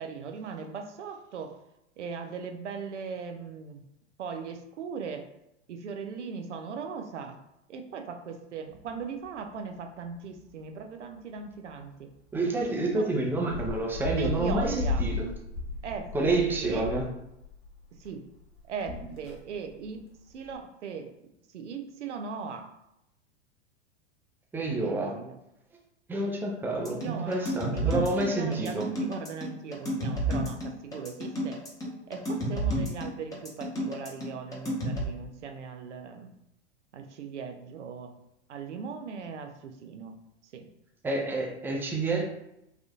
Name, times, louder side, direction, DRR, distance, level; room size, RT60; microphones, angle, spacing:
voice 1, 0.0-1.5 2.0-3.8 4.2-5.2 5.7-7.4 7.7-12.1 12.9-13.1 14.2-15.1 15.8-16.9 17.9-18.2 18.7-21.1 21.5-22.7 24.8-25.4 26.9-27.4 27.7-31.6 32.1-36.3 36.9-38.1 38.5-40.7, right 6 dB, 90° right, 5 dB, 0.6 m, -39 dB
sound 1, 8.7-9.4 9.7-9.8 10.1-10.6 11.2-11.4 11.7-11.8 12.6-12.7 13.3-18.1 18.4-20.1 20.4-20.6, left 2 dB, 40° left, 1.1 m, -35 dB
voice 2, 12.3-15.3 16.1-17.0 24.5-25.1 26.1-28.9 41.0-42.2, right 2 dB, 5° right, -1 dB, 0.5 m, -28 dB
sound 2, 26.9-35.0, right 1 dB, 10° left, 0.8 m, -31 dB
3.4 x 2.5 x 2.3 m, 0.84 s
hypercardioid pair, 110°, 34 cm